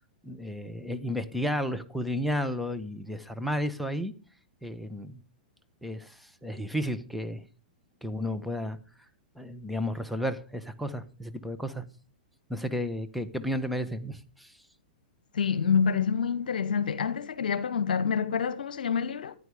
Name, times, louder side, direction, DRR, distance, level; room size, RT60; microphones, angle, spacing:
voice 1, 0.2-4.1 4.6-5.2 5.8-7.4 8.0-8.8 9.3-11.8 12.5-14.5, equal, ahead, 1.4 m, -32 dB
voice 2, 15.3-19.3, left 6 dB, 70° left, 1.1 m, -27 dB
14.0 x 10.0 x 5.1 m
hypercardioid pair, 110°, 5 cm